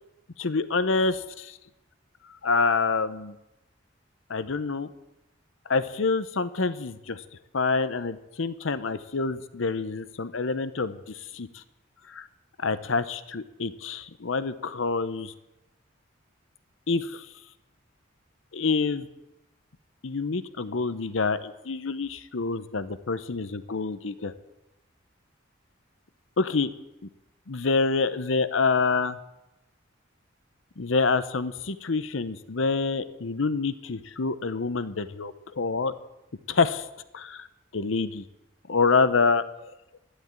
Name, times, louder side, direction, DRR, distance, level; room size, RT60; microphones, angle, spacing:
voice 1, 0.4-1.2 2.4-3.4 4.3-4.9 5.7-7.2 7.5-11.6 12.1-12.3 12.6-15.3 16.9-17.3 18.5-19.1 20.0-24.3 26.4-26.7 27.5-29.2 30.8-35.9 36.5-36.9 37.1-37.5 37.7-38.2 38.7-39.4, left 4 dB, 75° left, 13 dB, 0.8 m, -27 dB
12.0 x 11.5 x 8.9 m, 0.94 s
head